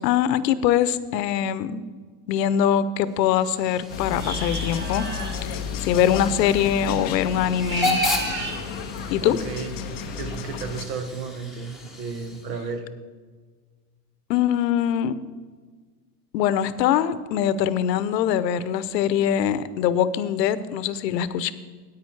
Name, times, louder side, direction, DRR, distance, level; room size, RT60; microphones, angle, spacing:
voice 1, 0.0-1.8 2.3-5.1 5.4-8.0 9.1-9.4 14.3-15.2 16.3-21.5, left 9 dB, 80° left, 15 dB, 0.8 m, -23 dB
Hiss / Train / Alarm, 3.1-12.7, left 2 dB, ahead, 0.9 m, -34 dB
sound 1, 3.9-10.9, left 6 dB, 20° left, 0.4 m, -33 dB
sound 2, 4.1-5.4 7.5-8.6, right 2 dB, 20° right, 1.4 m, -32 dB
voice 2, 9.2-9.7 10.2-12.9, right 5 dB, 80° right, 8 dB, 1.5 m, -33 dB
9.7 x 9.0 x 4.7 m, 1.5 s
supercardioid pair, 145°, 49 cm